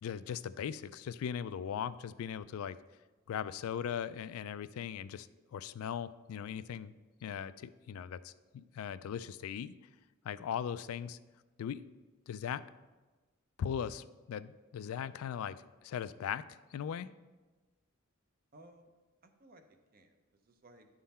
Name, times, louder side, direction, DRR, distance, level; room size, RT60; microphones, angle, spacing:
voice 1, 0.0-2.8 3.3-6.9 7.2-9.7 10.2-11.2 11.6-11.9 12.3-12.6 13.6-16.4 16.7-17.1, left 8 dB, 85° left, 16 dB, 0.3 m, -39 dB
voice 2, 18.5-18.9 19.2-20.9, right 1 dB, 45° right, 6 dB, 0.7 m, -59 dB
10.5 x 3.8 x 4.2 m, 1.2 s
head